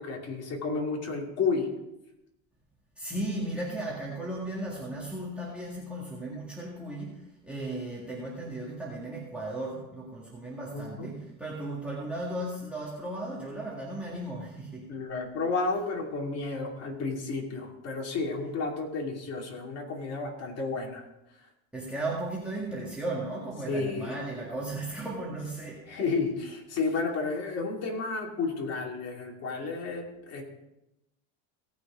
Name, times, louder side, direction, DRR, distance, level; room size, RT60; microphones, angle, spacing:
voice 1, 0.0-1.7 10.7-11.1 14.9-21.0 23.7-24.2 25.9-30.4, left 4 dB, 40° left, 0 dB, 2.7 m, -32 dB
voice 2, 3.0-14.9 21.7-26.0, right 1 dB, 5° right, -5 dB, 1.9 m, -36 dB
17.5 x 6.0 x 4.9 m, 0.92 s
cardioid pair, 135°, 39 cm